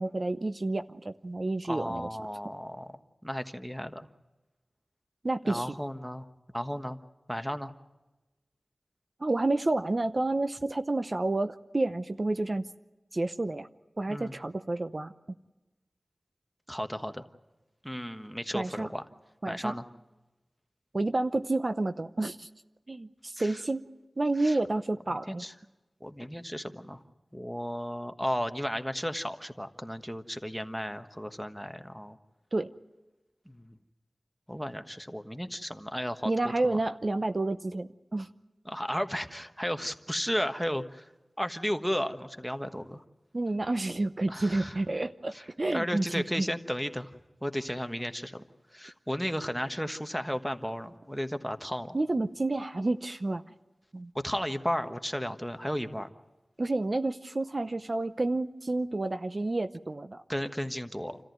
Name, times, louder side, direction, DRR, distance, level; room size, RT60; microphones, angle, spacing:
voice 1, 0.0-2.1 5.2-5.7 9.2-12.6 13.1-13.7 14.0-15.1 18.5-18.9 19.4-19.8 20.9-22.5 22.9-23.8 24.2-25.4 32.5-32.7 36.2-38.3 43.3-46.5 51.9-53.4 53.9-54.1 56.6-60.2, right 2 dB, 45° right, 10 dB, 0.7 m, -30 dB
voice 2, 1.7-2.9 3.2-4.1 5.4-6.2 6.5-7.0 7.3-7.7 14.1-14.3 16.7-17.2 17.8-19.0 19.5-19.8 23.4-23.6 24.4-24.6 25.1-25.5 26.0-27.0 27.3-32.2 33.5-33.8 34.5-36.3 36.6-36.8 38.6-41.1 41.4-43.0 44.3-44.8 45.3-45.4 45.7-47.1 47.4-48.4 48.7-52.0 54.2-56.1 60.3-61.2, equal, ahead, 7 dB, 1.3 m, -34 dB
28.5 x 14.0 x 9.3 m, 1.1 s
wide cardioid pair, 55°, 0 cm